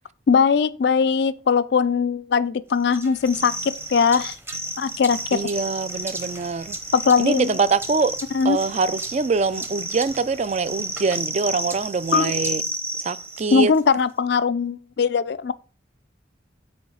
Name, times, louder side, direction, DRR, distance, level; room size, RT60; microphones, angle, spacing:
voice 1, 0.3-4.3 4.8-5.4 6.9-7.5 8.3-8.6 12.1-12.3 13.5-15.5, left 5 dB, 60° left, 0.4 m, -20 dB
sound 1, 2.9-13.8, right 1 dB, 10° right, 0.8 m, -32 dB
voice 2, 5.3-6.8 7.2-8.1 8.4-12.6 13.0-13.7, right 4 dB, 35° right, 0.4 m, -24 dB
8.6 x 3.2 x 6.3 m
head